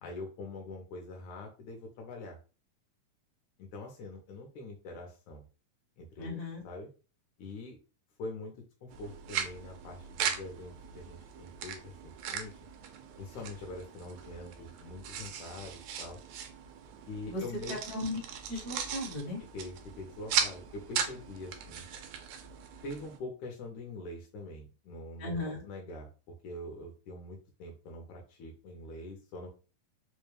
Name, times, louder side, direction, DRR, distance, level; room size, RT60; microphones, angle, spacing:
voice 1, 0.0-2.4 3.6-5.4 6.0-6.4 6.6-6.9 7.4-7.8 8.2-8.5 8.8-12.5 13.2-16.2 17.1-17.8 19.5-21.9 22.8-25.3 25.7-29.5, left 2 dB, 75° left, 1 dB, 1.9 m, -44 dB
voice 2, 6.2-6.6 17.3-17.4 17.7-18.2 18.5-19.4 25.2-25.7, left 2 dB, 50° left, -3 dB, 1.1 m, -36 dB
sound 1, 8.9-23.2, right 8 dB, 85° right, 1.6 m, -38 dB
5.0 x 2.2 x 3.2 m, 0.35 s
omnidirectional pair, 3.7 m